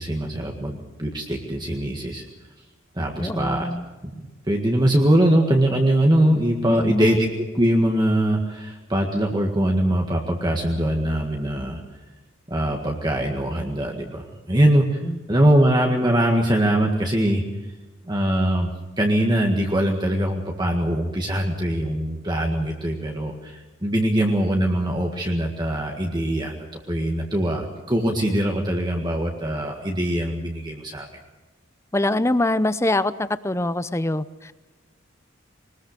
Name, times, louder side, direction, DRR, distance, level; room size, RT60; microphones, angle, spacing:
voice 1, 0.0-2.2 3.0-3.7 4.5-11.8 12.5-15.0 15.3-17.4 18.0-18.7 19.0-26.6 26.9-31.1, right 1 dB, 20° right, 1 dB, 1.8 m, -22 dB
voice 2, 3.2-3.8 6.7-7.2 15.0-15.2 31.9-34.5, left 1 dB, 15° left, 14 dB, 0.6 m, -24 dB
22.0 x 20.0 x 6.7 m, 1.2 s
head